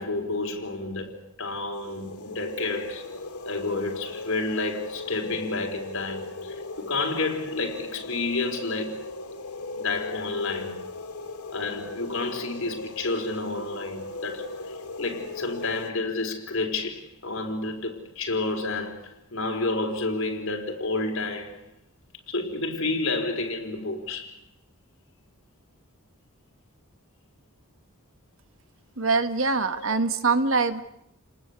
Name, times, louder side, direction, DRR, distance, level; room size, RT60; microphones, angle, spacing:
voice 1, 0.0-3.2 3.5-9.1 9.7-10.9 11.5-21.6 22.3-24.4 29.7-30.0, left 3 dB, 60° left, 4.4 m, -30 dB
sound 1, 1.7-15.9, left 3 dB, 90° left, 2.7 m, -38 dB
voice 2, 29.0-30.8, right 4 dB, 60° right, 1.6 m, -23 dB
29.5 x 19.5 x 8.3 m
head